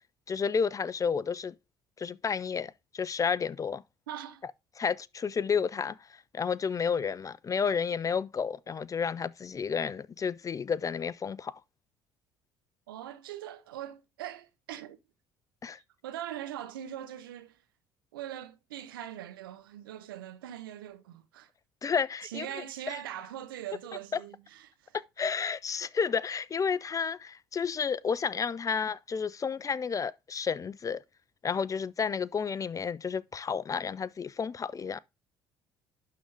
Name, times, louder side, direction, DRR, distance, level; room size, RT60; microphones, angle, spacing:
voice 1, 0.3-1.5 2.0-3.8 4.8-11.6 15.6-15.8 21.8-22.6 25.2-31.0 31.4-35.0, left 6 dB, 30° left, 0.5 m, -31 dB
voice 2, 4.1-4.4 12.9-15.0 15.7-17.6 18.1-21.5 22.2-25.0, right 11 dB, 85° right, 0.8 m, -42 dB
11.5 x 3.8 x 3.3 m
hypercardioid pair, 60°, 11 cm